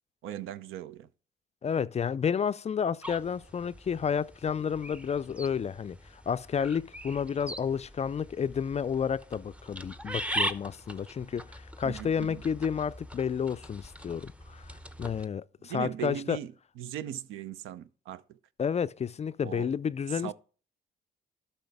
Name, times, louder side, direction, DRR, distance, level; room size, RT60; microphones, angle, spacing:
voice 1, 0.2-1.1 11.8-12.4 15.6-18.4 19.4-19.7 20.1-20.3, right 11 dB, 75° right, 0.5 m, -39 dB
voice 2, 1.6-16.4 18.6-20.3, left 7 dB, 30° left, 0.4 m, -31 dB
sound 1, 3.0-15.2, right 1 dB, 5° right, 0.7 m, -41 dB
11.5 x 5.8 x 3.4 m
supercardioid pair, 55°, 21 cm